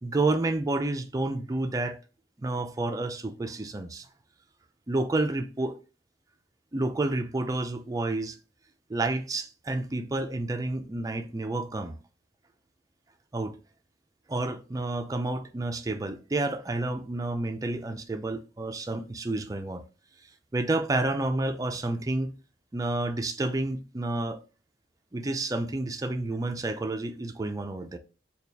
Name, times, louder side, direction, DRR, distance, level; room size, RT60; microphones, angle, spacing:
voice 1, 0.0-2.0 2.4-4.1 4.9-5.8 6.7-8.4 8.9-11.9 13.3-13.6 14.3-19.8 20.5-22.3 22.7-24.4 25.1-28.0, right 2 dB, 20° right, 0.4 m, -30 dB
4.2 x 2.3 x 3.3 m
head